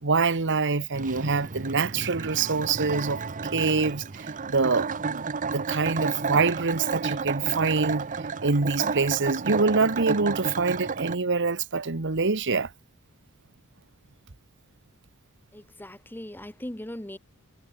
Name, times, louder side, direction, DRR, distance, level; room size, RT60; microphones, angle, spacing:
voice 1, 0.0-3.2 3.5-5.3 5.5-8.1 8.4-12.7, right 4 dB, 55° right, 1.3 m, -25 dB
sound 1, 0.9-11.2, right 4 dB, 35° right, 0.8 m, -32 dB
voice 2, 15.5-17.2, left 1 dB, 10° left, 1.1 m, -39 dB
head